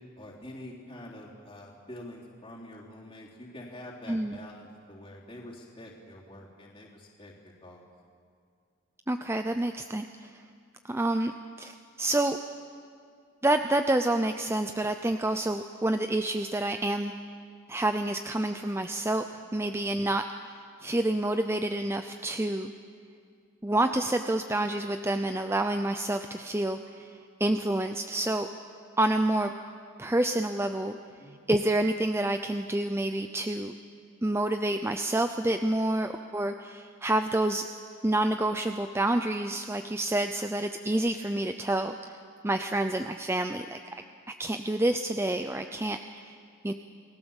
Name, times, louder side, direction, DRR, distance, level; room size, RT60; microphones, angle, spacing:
voice 1, 0.2-7.8 31.2-31.4, left 1 dB, 25° left, -4 dB, 3.5 m, -46 dB
voice 2, 4.1-4.4 9.1-10.3 10.9-11.3 11.6-12.4 13.4-17.1 17.7-20.5 20.8-22.7 23.6-27.1 27.4-28.5 29.0-29.5 30.0-31.0 31.5-33.7 34.2-37.7 38.0-42.2 42.4-43.8 44.4-46.3 46.6-46.7, right 1 dB, 10° right, 7 dB, 0.6 m, -28 dB
29.5 x 20.0 x 7.3 m, 2.3 s
head